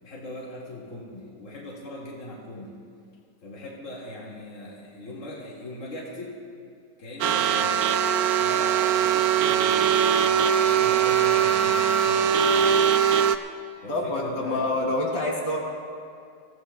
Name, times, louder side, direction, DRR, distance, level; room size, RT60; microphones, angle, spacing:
voice 1, 0.0-2.8 3.4-6.4 7.0-7.9 8.4-13.0 13.8-14.9, left 1 dB, 45° left, -5 dB, 2.5 m, -40 dB
sound 1, 7.2-13.4, right 8 dB, 70° right, 1.0 m, -21 dB
voice 2, 13.9-15.6, left 2 dB, 75° left, -4 dB, 3.9 m, -26 dB
26.5 x 16.5 x 2.3 m, 2.3 s
omnidirectional pair, 1.9 m